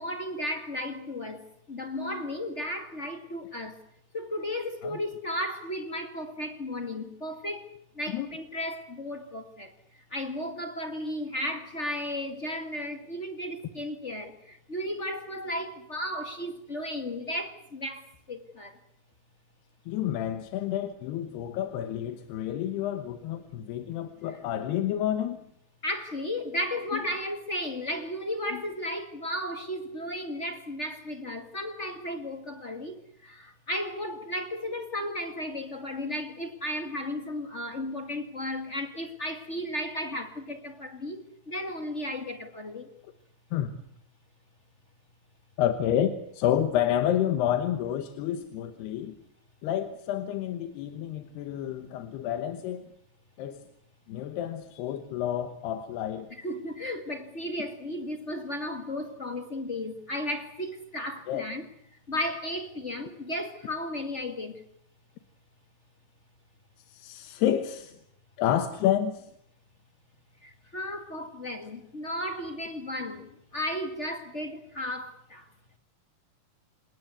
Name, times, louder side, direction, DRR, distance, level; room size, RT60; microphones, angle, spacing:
voice 1, 0.0-3.8 4.1-9.7 10.1-18.8 25.8-42.9 56.4-61.7 62.1-64.6 70.4-75.5, left 1 dB, 40° left, 0.9 m, -34 dB
voice 2, 19.9-25.4 26.9-27.0 28.5-28.6 43.5-43.8 45.6-49.1 49.6-52.9 53.4-53.6 54.1-56.3 61.3-61.5 66.9-67.9 68.4-69.3, left 11 dB, 90° left, 3.3 m, -29 dB
28.0 x 18.0 x 8.2 m
omnidirectional pair, 4.5 m